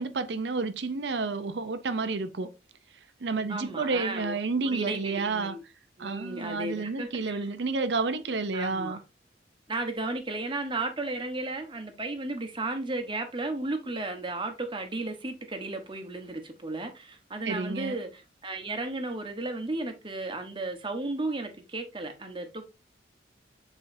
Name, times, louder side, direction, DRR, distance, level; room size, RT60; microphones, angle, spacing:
voice 1, 0.0-2.5 3.2-5.5 6.0-9.0 17.4-18.0, right 4 dB, 65° right, 0.6 m, -30 dB
voice 2, 3.5-4.4 4.6-5.6 6.0-7.5 8.5-9.0 9.7-22.7, right 2 dB, 25° right, 1.1 m, -34 dB
7.9 x 4.5 x 2.7 m
head